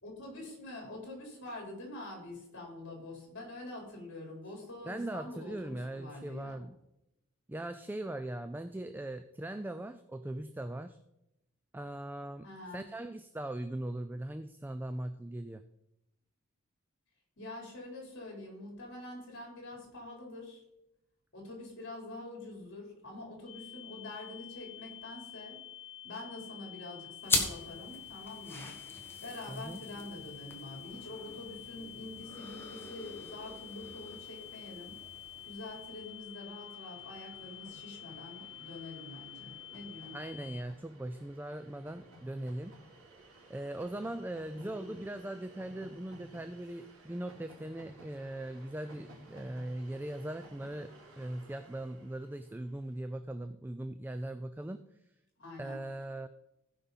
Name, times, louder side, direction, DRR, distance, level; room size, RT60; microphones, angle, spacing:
voice 1, 0.0-6.6 12.4-12.9 17.4-20.6 21.3-25.6 26.0-28.7 29.2-35.0 35.4-40.2 44.5-44.9 55.4-55.8, left 2 dB, 55° left, 0 dB, 3.8 m, -46 dB
voice 2, 4.9-6.8 7.5-11.0 11.7-12.5 12.7-15.6 29.5-29.8 40.1-42.8 43.5-54.8 55.6-56.3, right 1 dB, 10° right, 9 dB, 0.3 m, -40 dB
sound 1, 23.5-40.6, left 12 dB, 35° left, 1.1 m, -49 dB
sound 2, 27.2-36.2, left 2 dB, 10° left, 1.3 m, -40 dB
Train, 34.6-53.0, right 1 dB, 90° right, 3.4 m, -57 dB
16.0 x 5.5 x 4.0 m, 0.88 s
head